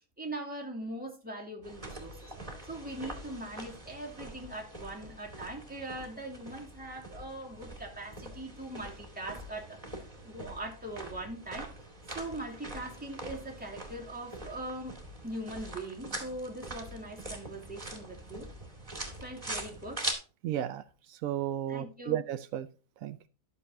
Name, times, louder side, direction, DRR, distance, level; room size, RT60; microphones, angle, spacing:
voice 1, 0.2-2.3 2.6-11.7 12.1-15.0 15.2-18.5 19.2-20.0 21.7-22.2, right 1 dB, 5° right, -2 dB, 2.4 m, -41 dB
sound 1, 1.6-20.1, right 1 dB, 25° right, 2.3 m, -43 dB
voice 2, 20.4-20.8 21.1-22.7 23.0-23.2, right 11 dB, 80° right, 12 dB, 1.0 m, -33 dB
12.5 x 6.8 x 2.7 m, 0.35 s
omnidirectional pair, 1.4 m